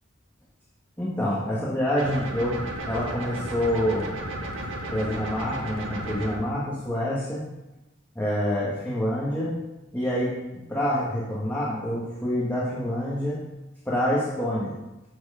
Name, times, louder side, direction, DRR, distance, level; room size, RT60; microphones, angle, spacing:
voice 1, 1.0-2.6 2.9-4.1 4.9-7.4 8.2-9.6 9.9-10.3 10.7-13.4 13.9-14.7, equal, 10° left, -8 dB, 1.6 m, -27 dB
sound 1, 2.0-6.4, right 1 dB, 90° right, 1.6 m, -34 dB
13.0 x 4.6 x 5.0 m, 1.0 s
head